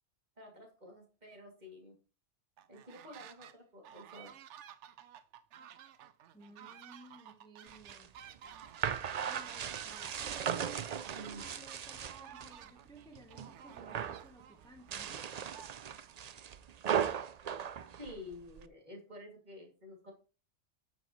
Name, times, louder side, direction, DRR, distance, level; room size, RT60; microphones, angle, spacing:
voice 1, 0.4-1.9 2.7-4.3 11.2-11.4 18.0-20.1, left 1 dB, 40° right, 0 dB, 2.9 m, -50 dB
sound 1, 2.6-3.5 3.8-16.2, right 9 dB, 80° right, 0.9 m, -54 dB
voice 2, 6.3-8.1 9.3-15.3, right 3 dB, 5° left, 4 dB, 1.0 m, -56 dB
sound 2, 7.7-12.6 12.9-13.5 13.8-14.3 14.8-18.7, right 8 dB, 55° right, 0.4 m, -37 dB
9.1 x 7.8 x 3.2 m, 0.35 s
omnidirectional pair, 1.2 m